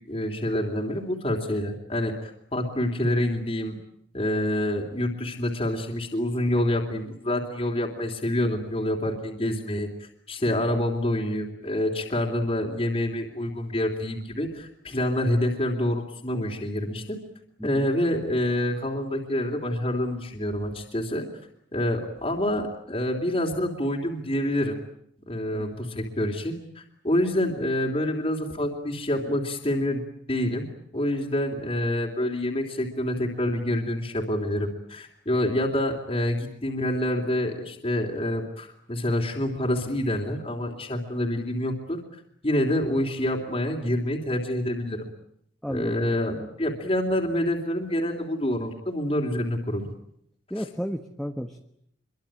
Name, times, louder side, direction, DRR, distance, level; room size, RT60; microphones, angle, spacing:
voice 1, 0.1-3.8 4.1-17.2 17.6-21.3 21.7-24.8 25.3-45.1 45.7-49.9 50.6-50.7, left 1 dB, 30° left, 0 dB, 3.3 m, -27 dB
voice 2, 45.6-46.5 50.5-51.6, equal, 5° left, 5 dB, 1.3 m, -33 dB
26.0 x 23.5 x 8.9 m, 0.73 s
head